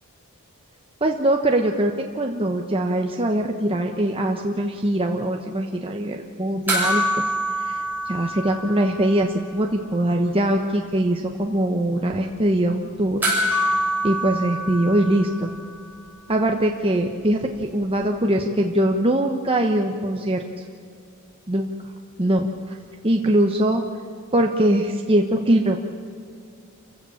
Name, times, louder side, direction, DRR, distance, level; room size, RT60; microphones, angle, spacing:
voice 1, 1.0-7.2 7.6-13.7 14.0-15.5 16.3-20.4 21.5-21.7 22.2-22.8 23.0-23.9 24.3-25.8, right 1 dB, 25° right, 2 dB, 1.1 m, -22 dB
sound 1, 6.7-9.3 9.6-9.7 13.2-15.8 18.0-18.1, equal, 10° right, 7.1 m, -25 dB
28.5 x 16.0 x 7.2 m, 2.3 s
head